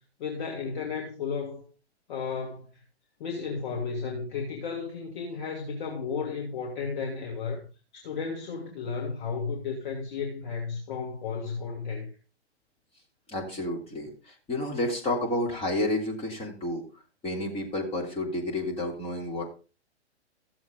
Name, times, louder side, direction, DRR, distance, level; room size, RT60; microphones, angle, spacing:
voice 1, 0.2-1.6 2.1-2.8 3.2-7.6 7.9-12.1, left 5 dB, 45° left, 2.2 m, -33 dB
voice 2, 13.3-16.8 17.2-19.4, left 1 dB, 15° left, 3.4 m, -30 dB
15.0 x 7.3 x 3.9 m
figure-of-eight pair, 115°, 34 cm